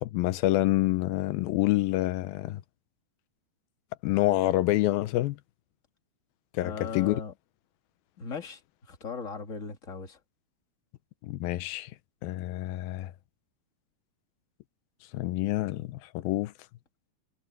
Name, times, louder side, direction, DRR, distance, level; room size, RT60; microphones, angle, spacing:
voice 1, 0.0-2.6 4.0-5.4 6.5-7.2 11.2-11.9 12.2-13.1 15.1-16.5, left 16 dB, 80° left, 2.6 m, -27 dB
voice 2, 6.6-7.3 8.2-10.2, left 5 dB, 25° left, 1.8 m, -38 dB
omnidirectional pair, 4.3 m